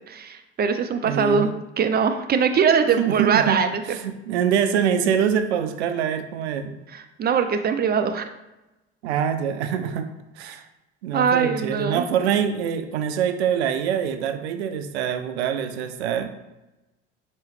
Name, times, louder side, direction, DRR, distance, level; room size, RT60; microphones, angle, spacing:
voice 1, 0.1-1.5 1.8-3.8 6.9-8.2 11.1-12.0, right 6 dB, 30° right, 8 dB, 0.5 m, -22 dB
voice 2, 1.0-1.5 3.0-3.6 3.9-6.7 9.0-10.1 10.4-10.6 11.0-16.3, right 8 dB, 85° right, 9 dB, 0.5 m, -24 dB
4.5 x 2.9 x 3.2 m, 0.99 s
hypercardioid pair, 65°, 32 cm